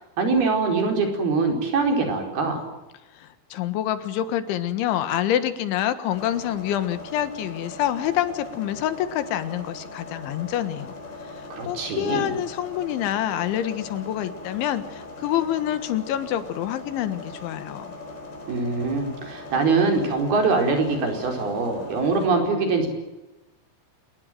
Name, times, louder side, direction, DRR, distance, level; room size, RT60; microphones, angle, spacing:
voice 1, 0.2-2.7 11.5-12.3 18.5-22.9, right 4 dB, 60° right, 3 dB, 6.5 m, -23 dB
voice 2, 3.2-11.0 11.3-17.9, left 11 dB, 90° left, 11 dB, 4.0 m, -27 dB
sound 1, 6.1-22.3, left 2 dB, 55° left, 5.6 m, -40 dB
26.5 x 21.5 x 7.7 m, 1.0 s
omnidirectional pair, 5.2 m